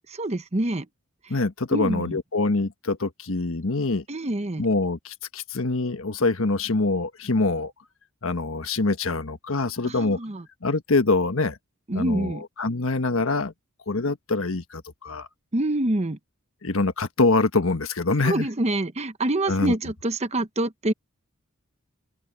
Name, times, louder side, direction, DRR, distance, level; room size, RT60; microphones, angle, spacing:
voice 1, 0.1-0.9 1.7-2.2 4.1-4.6 9.8-10.4 11.9-12.4 15.5-16.2 18.2-20.9, right 1 dB, 30° right, 0.9 m, -26 dB
voice 2, 1.3-4.0 4.6-7.7 8.2-10.2 10.6-11.6 11.9-13.5 13.9-15.3 16.6-18.5 19.5-19.7, left 3 dB, 65° left, 1.4 m, -24 dB
open air
head